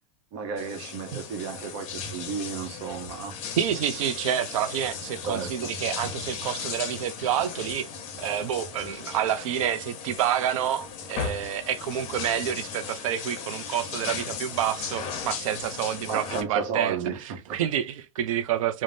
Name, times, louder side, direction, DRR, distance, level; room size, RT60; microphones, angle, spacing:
voice 1, 0.3-3.4 5.3-5.7 16.0-17.6, right 6 dB, 55° right, 0.7 m, -33 dB
sound 1, 0.6-16.4, left 6 dB, 35° left, 0.7 m, -37 dB
voice 2, 3.6-7.9 8.2-17.0 17.5-18.8, right 10 dB, 75° right, 0.4 m, -28 dB
2.6 x 2.0 x 3.2 m
supercardioid pair, 125°, 17 cm